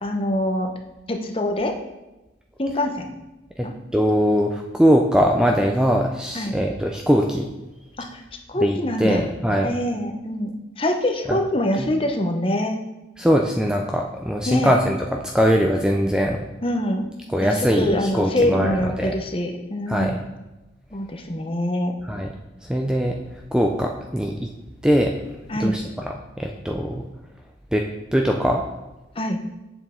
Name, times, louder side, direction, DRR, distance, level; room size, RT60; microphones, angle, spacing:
voice 1, 0.0-0.7 1.1-1.7 2.6-3.1 3.6-3.7 6.3-6.5 8.0-8.2 8.5-9.3 9.6-10.5 10.8-12.8 14.5-14.7 16.6-17.1 17.4-20.2 20.9-22.0 25.5-25.7 29.2-29.4, left 1 dB, 30° left, 3 dB, 0.8 m, -24 dB
voice 2, 3.6-7.5 8.6-9.7 11.3-11.4 11.8-11.9 13.2-16.4 17.3-19.1 19.9-20.2 22.1-22.3 22.7-23.2 23.5-24.5 24.8-25.1 25.6-27.1 27.7-27.9 28.1-28.6, equal, 5° right, 1 dB, 0.4 m, -21 dB
8.0 x 6.9 x 3.7 m, 1.0 s
head